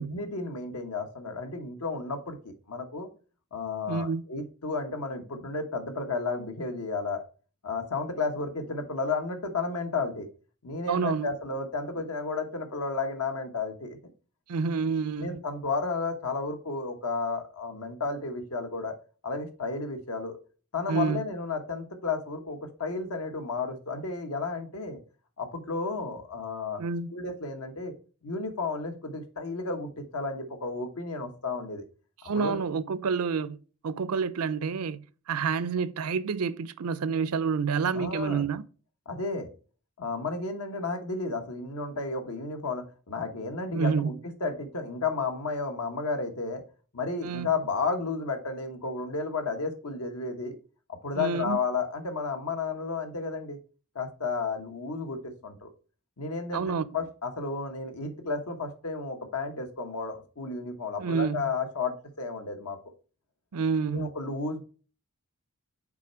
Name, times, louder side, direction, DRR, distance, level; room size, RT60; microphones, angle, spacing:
voice 1, 0.0-3.1 3.5-7.2 7.6-10.3 10.6-14.0 15.2-18.9 19.2-20.4 20.7-25.0 25.4-26.8 27.1-27.9 28.2-31.9 32.3-32.6 37.9-38.5 39.0-39.5 40.0-44.1 44.4-46.6 46.9-50.6 51.0-53.6 53.9-55.7 56.2-62.8 63.9-64.6, left 4 dB, 90° left, 1.3 m, -32 dB
voice 2, 3.9-4.2 10.9-11.3 14.5-15.4 20.9-21.2 26.8-27.1 32.2-33.6 33.8-35.0 35.3-38.6 43.7-44.1 47.2-47.5 51.1-51.6 56.5-56.8 61.0-61.4 63.5-64.2, right 5 dB, 85° right, 0.5 m, -28 dB
6.1 x 4.2 x 4.4 m
head